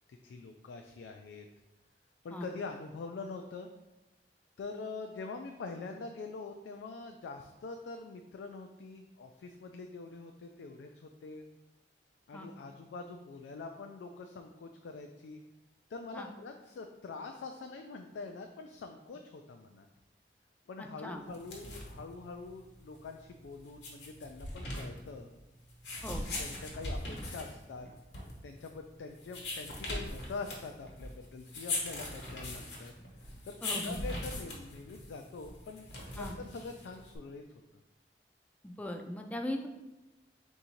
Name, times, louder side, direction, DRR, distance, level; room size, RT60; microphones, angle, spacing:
voice 1, 0.1-1.5 2.2-3.7 4.6-11.4 12.3-15.4 15.9-19.9 20.7-25.3 26.4-27.9 28.4-32.9 33.2-35.9 36.1-37.4, left 3 dB, 85° left, 4 dB, 0.3 m, -44 dB
voice 2, 20.8-21.2 26.0-26.2 33.6-34.0 36.2-36.3 38.6-39.7, left 1 dB, 10° left, 3 dB, 0.3 m, -39 dB
sound 1, 21.3-37.2, left 2 dB, 70° left, 1.1 m, -41 dB
3.6 x 2.7 x 4.3 m, 1.0 s
head